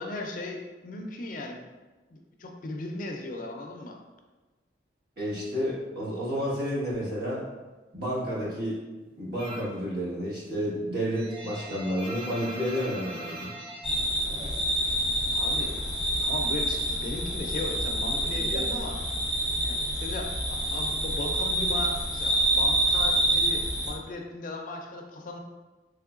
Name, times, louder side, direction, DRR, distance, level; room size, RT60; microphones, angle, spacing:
voice 1, 0.0-1.7 2.1-4.0 15.3-15.8 16.2-19.0 19.6-25.4, left 2 dB, 50° left, 3 dB, 0.4 m, -37 dB
voice 2, 5.2-7.4 7.9-8.8 9.2-13.5, equal, 60° right, -8 dB, 1.4 m, -30 dB
sound 1, 9.4-9.8 10.2-15.0 15.3-16.4 16.6-19.5, right 1 dB, 30° right, 0.5 m, -42 dB
sound 2, 13.8-23.9, right 1 dB, 5° right, 0.8 m, -27 dB
3.6 x 3.2 x 2.4 m, 1.2 s
head